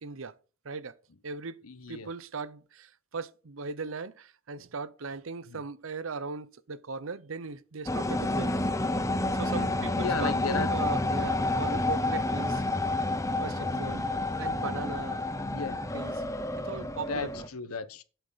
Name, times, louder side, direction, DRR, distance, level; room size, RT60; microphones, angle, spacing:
voice 1, 0.0-0.3 0.6-0.9 1.2-1.6 1.9-8.6 9.3-12.6 13.4-14.0 14.4-15.2 15.9-16.1 16.6-17.5, right 4 dB, 65° right, 0.7 m, -38 dB
voice 2, 1.6-2.1 5.5-5.6 10.0-10.7 13.7-14.0 15.5-15.8 16.8-18.0, left 4 dB, 90° left, 1.1 m, -35 dB
sound 1, 7.9-17.5, left 2 dB, 15° left, 0.7 m, -29 dB
8.4 x 8.1 x 4.0 m
head